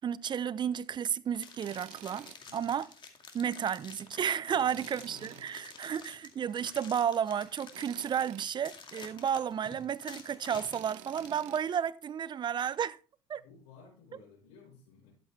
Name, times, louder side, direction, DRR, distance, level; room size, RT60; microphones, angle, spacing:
voice 1, 0.0-2.9 3.3-13.0 13.3-13.4, right 8 dB, 40° right, 0.6 m, -32 dB
sound 1, 1.3-11.4, left 5 dB, 40° left, 2.2 m, -50 dB
Tools, 1.6-2.4 2.8-2.9 4.7-5.8 7.7-8.5 10.7-11.6, right 14 dB, 75° right, 0.8 m, -50 dB
voice 2, 4.4-5.7 13.3-15.1, left 5 dB, 70° left, 4.8 m, -56 dB
11.5 x 8.0 x 3.4 m
supercardioid pair, 75°, 12 cm